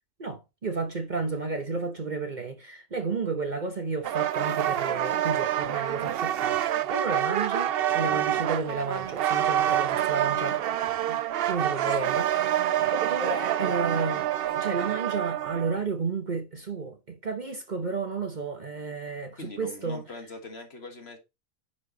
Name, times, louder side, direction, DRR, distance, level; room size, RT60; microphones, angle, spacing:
voice 1, 0.2-10.6 11.1-11.2 11.5-12.6 12.9-20.0, right 4 dB, 40° right, 1.0 m, -32 dB
sound 1, 4.0-15.8, right 11 dB, 60° right, 0.6 m, -27 dB
voice 2, 11.8-12.2 19.4-21.2, left 3 dB, 50° left, 1.8 m, -42 dB
9.9 x 4.6 x 3.9 m
omnidirectional pair, 1.4 m